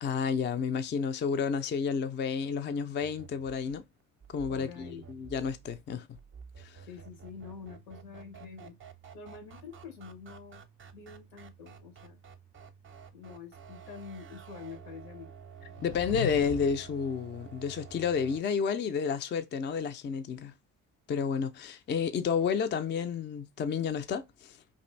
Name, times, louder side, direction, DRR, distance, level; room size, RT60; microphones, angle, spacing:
voice 1, 0.0-3.8 4.3-6.1 6.6-6.8 15.8-20.5 21.1-24.6, left 6 dB, 30° left, 0.4 m, -31 dB
sound 1, 3.0-18.4, right 7 dB, 30° right, 0.5 m, -51 dB
voice 2, 4.5-5.0 5.9-6.0 6.9-8.8 9.1-10.6 10.9-12.2 13.1-15.3, left 6 dB, 85° left, 1.0 m, -46 dB
sound 2, 15.6-17.0, left 8 dB, 60° left, 0.7 m, -38 dB
2.6 x 2.4 x 3.1 m
hypercardioid pair, 45°, 42 cm